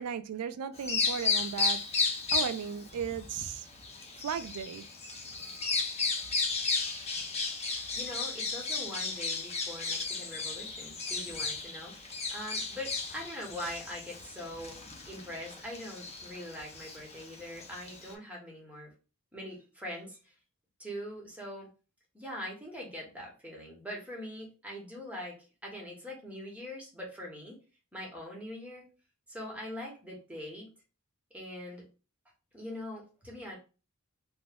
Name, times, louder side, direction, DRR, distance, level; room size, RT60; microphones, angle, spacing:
voice 1, 0.0-1.8 2.3-3.7 4.2-4.9 5.4-5.7, right 7 dB, 75° right, 0.4 m, -36 dB
Bird vocalization bird call bird song, 0.7-18.1, left 4 dB, 30° left, 0.6 m, -34 dB
voice 2, 7.9-18.9 19.3-20.3 20.8-21.7 22.1-27.6 27.9-28.8 29.3-30.7 31.3-31.8 32.5-33.6, left 1 dB, 5° right, 1.0 m, -42 dB
2.9 x 2.1 x 3.4 m
head